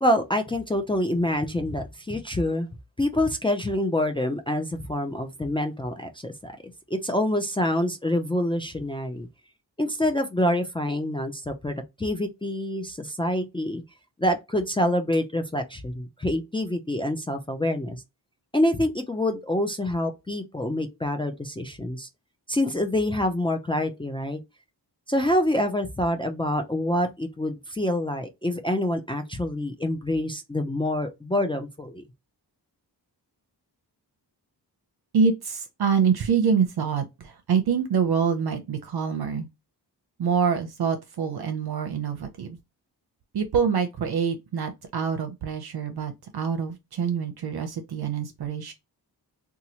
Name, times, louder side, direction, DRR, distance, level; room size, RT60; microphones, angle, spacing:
voice 1, 0.0-2.7 3.0-6.5 6.9-9.3 9.8-13.8 14.2-18.0 18.5-22.1 22.5-24.4 25.1-32.0, left 1 dB, 15° left, 0.4 m, -26 dB
voice 2, 35.1-39.5 40.2-42.6 43.3-48.7, right 6 dB, 65° right, 0.6 m, -25 dB
2.9 x 2.3 x 2.8 m
cardioid pair, 70°, 41 cm